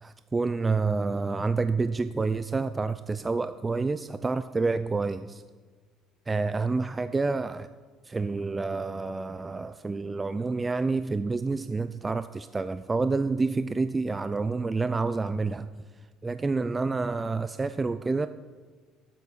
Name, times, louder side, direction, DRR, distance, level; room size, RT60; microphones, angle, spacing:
voice 1, 0.0-5.4 6.3-7.7 8.0-15.7 16.2-18.3, right 3 dB, 15° right, 12 dB, 0.3 m, -28 dB
12.5 x 8.4 x 6.2 m, 1.4 s
cardioid pair, 135°, 0 cm